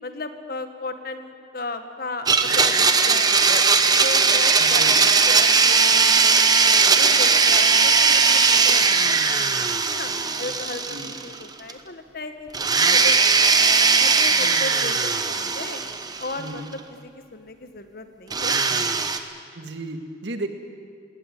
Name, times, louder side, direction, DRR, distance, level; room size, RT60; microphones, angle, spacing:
voice 1, 0.0-3.6 4.0-6.5 6.9-10.1 10.4-13.2 14.0-15.8 16.2-18.6, left 2 dB, 55° left, 8 dB, 1.6 m, -35 dB
Domestic sounds home sounds, 2.3-11.4 11.7-11.8 12.5-16.5 18.3-19.2, right 4 dB, 20° right, 1.0 m, -19 dB
voice 2, 4.6-5.0 10.9-11.2 16.4-16.7 18.7-18.8 19.6-20.5, right 2 dB, 75° right, 6 dB, 1.9 m, -34 dB
20.5 x 17.5 x 9.1 m, 2.3 s
head